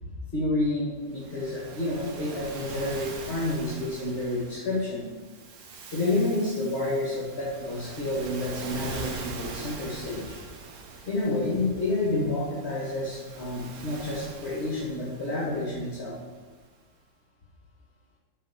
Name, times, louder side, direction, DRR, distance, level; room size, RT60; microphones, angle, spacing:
voice 1, 0.0-5.1 5.9-10.4 11.1-16.1, left 2 dB, 45° left, -7 dB, 2.3 m, -29 dB
Waves surf, 1.1-16.6, right 4 dB, 90° right, 1.5 m, -43 dB
7.4 x 5.0 x 6.9 m, 1.3 s
omnidirectional pair, 1.5 m